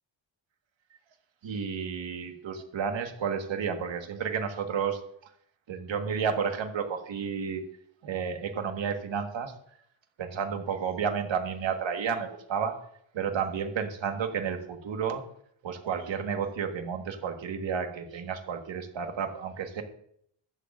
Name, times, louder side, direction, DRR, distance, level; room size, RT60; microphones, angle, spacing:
voice 1, 1.4-5.0 5.7-7.6 8.0-9.5 10.2-12.7 13.1-15.2 15.6-19.8, right 6 dB, 75° right, 5 dB, 1.7 m, -31 dB
14.5 x 11.5 x 2.6 m, 0.67 s
wide cardioid pair, 135°, 46 cm